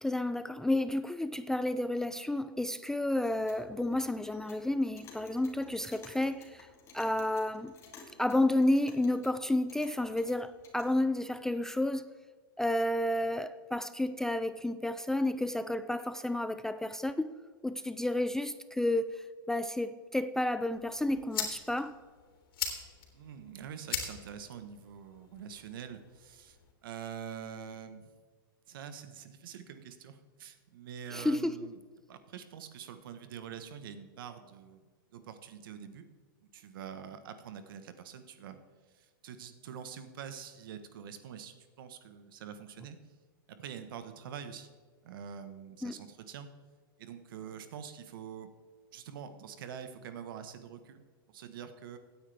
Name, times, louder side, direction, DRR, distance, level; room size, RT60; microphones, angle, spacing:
voice 1, 0.0-6.7 6.9-7.7 8.2-12.1 12.6-17.3 17.6-22.0 31.1-31.7 45.8-45.9, left 1 dB, 5° left, 0.3 m, -31 dB
Clock, 3.2-11.0, left 3 dB, 25° left, 2.5 m, -55 dB
sound 1, 20.7-26.7, left 7 dB, 85° left, 3.4 m, -41 dB
voice 2, 23.1-26.6 26.8-28.1 28.7-31.8 32.1-34.8 35.1-36.1 36.4-38.6 38.9-43.0 43.5-44.7 45.0-46.5 47.0-48.5 48.9-52.0, right 8 dB, 70° right, 1.4 m, -45 dB
17.0 x 9.5 x 3.5 m
hypercardioid pair, 130°, 12 cm